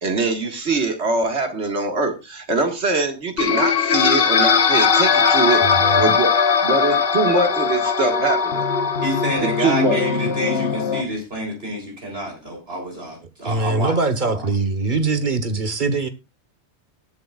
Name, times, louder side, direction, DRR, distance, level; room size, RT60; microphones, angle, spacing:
voice 1, 0.0-6.3 6.6-8.7 9.4-10.0, right 3 dB, 80° right, 2.1 m, -23 dB
sound 1, 3.4-11.0, left 6 dB, 65° left, 1.2 m, -19 dB
voice 2, 5.6-6.1 13.4-16.1, right 3 dB, 50° right, 1.4 m, -22 dB
voice 3, 9.0-14.0 14.2-14.5, right 1 dB, 65° right, 3.9 m, -28 dB
19.5 x 7.8 x 2.4 m
omnidirectional pair, 1.1 m